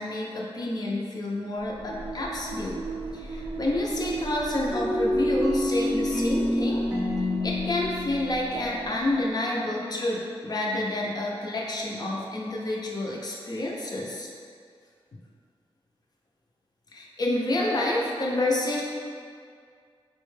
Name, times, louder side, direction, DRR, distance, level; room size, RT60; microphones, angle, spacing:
voice 1, 0.0-2.9 3.1-6.8 7.4-14.3 16.9-18.8, left 1 dB, 40° left, -3 dB, 0.4 m, -29 dB
sound 1, 1.5-9.3, right 3 dB, 65° right, 0.3 m, -37 dB
sound 2, 4.7-9.4, left 1 dB, 15° right, 0.7 m, -28 dB
4.0 x 2.1 x 3.1 m, 2.2 s
wide cardioid pair, 145°, 10 cm